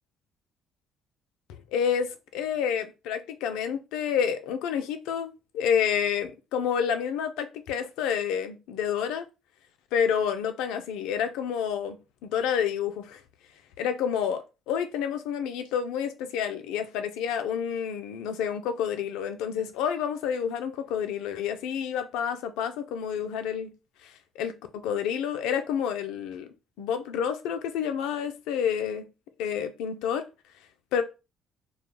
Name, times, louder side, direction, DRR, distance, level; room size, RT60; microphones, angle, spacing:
voice 1, 1.5-9.3 9.9-12.0 12.2-13.2 13.8-23.7 24.0-24.5 24.8-26.5 26.8-29.1 29.4-30.2 30.9-31.0, left 8 dB, 70° left, 0.3 m, -29 dB
2.3 x 2.1 x 2.9 m
hypercardioid pair, 50°, 0 cm